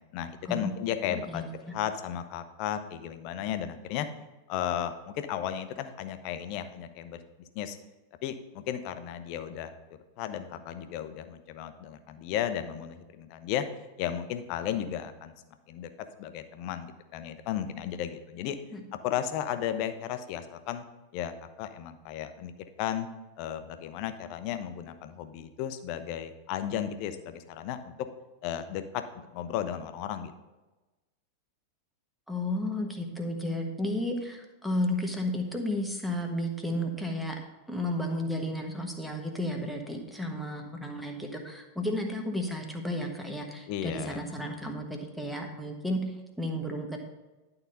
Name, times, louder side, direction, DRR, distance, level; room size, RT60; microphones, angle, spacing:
voice 1, 0.1-1.4 1.7-4.1 4.5-7.2 7.5-7.8 8.2-9.7 10.2-13.6 14.0-15.3 15.7-15.9 16.2-18.6 19.0-20.8 21.1-22.5 22.8-23.1 23.4-27.9 28.4-29.0 29.3-30.3 43.7-44.2, left 10 dB, 45° left, 9 dB, 0.7 m, -34 dB
voice 2, 1.1-1.7 18.7-18.8 32.3-37.4 37.7-47.0, left 1 dB, ahead, 2 dB, 1.3 m, -33 dB
11.0 x 3.9 x 5.5 m, 1.1 s
figure-of-eight pair, 90°, 0 cm